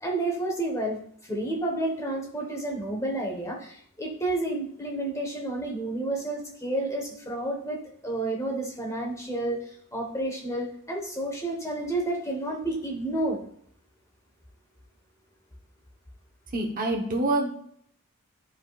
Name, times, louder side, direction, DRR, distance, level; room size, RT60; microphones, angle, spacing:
voice 1, 0.0-13.4, right 2 dB, 15° left, 0 dB, 1.3 m, -30 dB
voice 2, 16.5-17.5, right 2 dB, 40° right, 0 dB, 1.1 m, -26 dB
10.5 x 5.1 x 2.5 m, 0.65 s
head